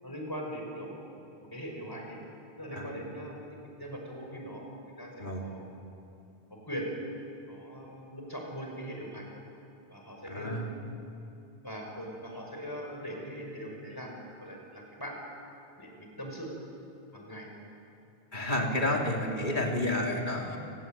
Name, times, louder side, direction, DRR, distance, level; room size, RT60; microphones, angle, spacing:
voice 1, 0.0-0.9 1.4-2.2 2.6-4.6 5.0-5.7 6.6-6.9 7.5-9.3 9.9-10.6 11.6-15.2 15.8-16.5 17.1-17.5 18.7-19.1, equal, 20° left, 0 dB, 5.6 m, -41 dB
voice 2, 10.3-10.7 18.3-20.6, left 1 dB, 50° left, 0 dB, 3.3 m, -30 dB
29.5 x 20.0 x 9.0 m, 2.7 s
omnidirectional pair, 1.0 m